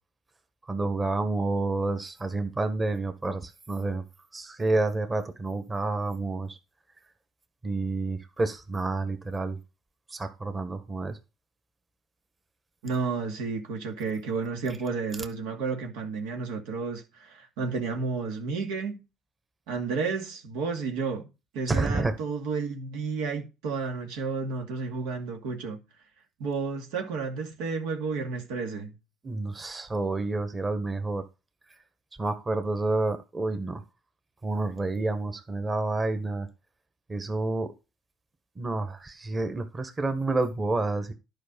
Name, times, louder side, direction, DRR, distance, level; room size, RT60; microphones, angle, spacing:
voice 1, 0.7-4.0 4.3-6.6 7.6-9.6 10.1-11.2 21.7-22.1 29.2-31.2 32.2-33.8 34.4-36.5 37.1-37.7 38.5-41.1, right 2 dB, 25° right, 1.6 m, -29 dB
voice 2, 12.8-19.0 19.7-21.3 21.5-25.8 26.4-29.0, right 4 dB, 90° right, 2.3 m, -31 dB
11.0 x 5.2 x 5.4 m
supercardioid pair, 95°, 0 cm